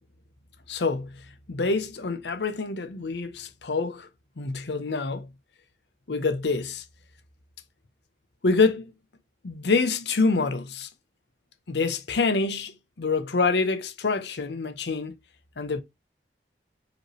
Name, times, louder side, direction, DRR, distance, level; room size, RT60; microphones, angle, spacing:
voice 1, 0.7-4.1 4.4-5.3 6.1-6.8 8.4-8.9 9.4-10.9 11.7-15.2 15.6-15.8, left 4 dB, 80° left, 0.7 m, -26 dB
4.9 x 3.2 x 3.0 m
head